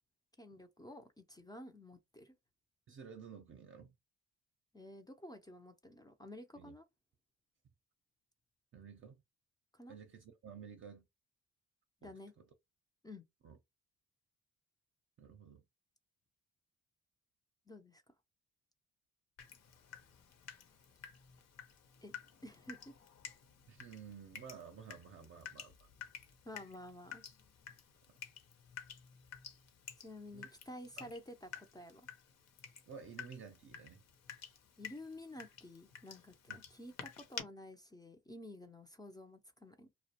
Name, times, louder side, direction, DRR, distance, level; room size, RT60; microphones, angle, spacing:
voice 1, 0.4-2.4 4.7-6.9 9.7-10.0 12.0-12.3 13.0-13.2 17.7-18.0 22.0-22.1 22.4-22.9 26.4-27.2 30.0-32.1 34.8-39.9, left 1 dB, 15° left, 0.5 m, -51 dB
voice 2, 2.9-3.9 6.6-6.7 8.7-9.2 9.9-11.0 12.0-12.1 13.4-13.6 15.2-15.6 23.7-25.9 30.3-30.5 31.0-31.1 32.9-34.0, right 6 dB, 45° right, 0.6 m, -52 dB
Water tap faucet / Drip, 19.4-37.4, left 7 dB, 60° left, 0.7 m, -52 dB
2.4 x 2.1 x 2.7 m
cardioid pair, 90°, 30 cm